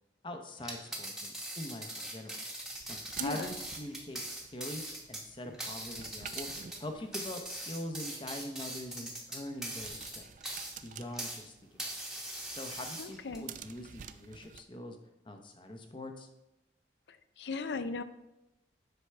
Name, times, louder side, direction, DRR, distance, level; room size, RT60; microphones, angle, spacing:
voice 1, 0.2-2.4 2.9-4.2 4.5-4.8 5.1-6.5 6.8-10.3 10.8-11.8 12.5-15.0 15.2-16.3, left 1 dB, 25° left, 5 dB, 0.8 m, -43 dB
sound 1, 0.6-11.4 11.8-13.4, right 1 dB, ahead, 1.0 m, -41 dB
sound 2, 2.6-14.6, right 9 dB, 45° right, 0.3 m, -50 dB
voice 2, 3.2-3.5 13.0-13.5 17.1-18.0, left 4 dB, 70° left, 11 dB, 0.5 m, -38 dB
8.0 x 5.6 x 3.4 m, 0.94 s
head